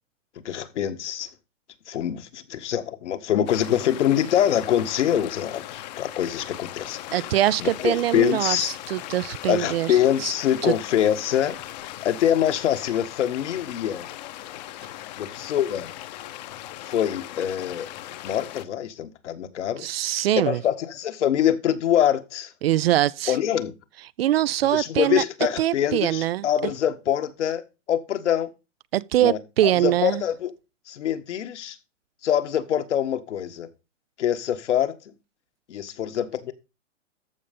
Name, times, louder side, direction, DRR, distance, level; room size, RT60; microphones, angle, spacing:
voice 1, 0.4-1.3 1.9-7.3 7.6-8.7 9.5-11.6 12.0-14.1 15.2-15.9 16.9-17.9 18.2-19.9 20.4-22.5 23.3-23.7 24.7-28.5 29.2-29.4 29.8-30.5 30.9-31.8 32.2-33.7 34.2-34.9 35.7-36.5, left 10 dB, 70° left, 1.7 m, -24 dB
sound 1, 3.5-18.7, left 14 dB, 35° left, 0.9 m, -39 dB
voice 2, 7.1-10.3 10.6-10.7 19.8-20.6 22.6-23.4 24.2-25.2 25.6-26.5 28.9-30.2, right 13 dB, 55° right, 0.5 m, -23 dB
13.5 x 5.3 x 5.3 m
hypercardioid pair, 155°, 37 cm